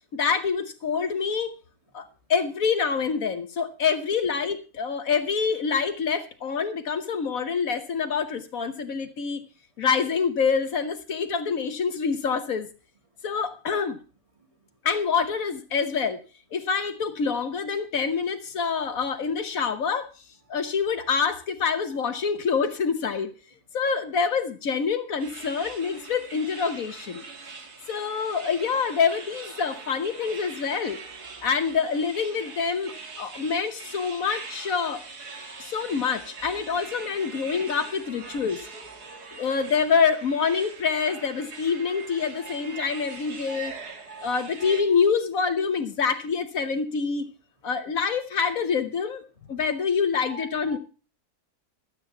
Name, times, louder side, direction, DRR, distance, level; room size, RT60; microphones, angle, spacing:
voice 1, 0.1-1.5 1.9-9.4 9.8-12.7 13.2-14.0 14.8-16.2 16.5-20.1 20.5-23.3 23.7-27.2 27.9-31.0 31.4-35.0 35.6-38.6 39.3-43.8 44.2-47.3 47.6-49.2 49.5-50.8, left 6 dB, 65° left, 1.4 m, -26 dB
sound 1, 25.2-44.8, right 4 dB, 90° right, 2.3 m, -42 dB
voice 2, 35.6-35.9 36.6-37.1 37.6-39.2 42.2-43.2 43.5-43.8 44.1-44.8 50.3-50.8, right 3 dB, 20° right, 1.9 m, -48 dB
13.0 x 8.6 x 5.8 m
omnidirectional pair, 1.6 m